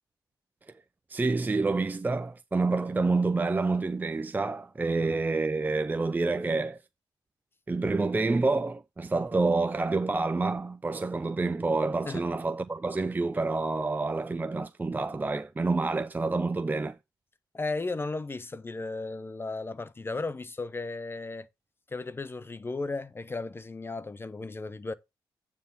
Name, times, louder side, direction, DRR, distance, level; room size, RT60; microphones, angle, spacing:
voice 1, 1.1-6.8 7.7-17.0, right 3 dB, 20° right, 0.5 m, -28 dB
voice 2, 17.5-21.5 21.9-24.9, left 3 dB, 25° left, 0.8 m, -35 dB
9.2 x 3.6 x 5.6 m
cardioid pair, 70°, 8 cm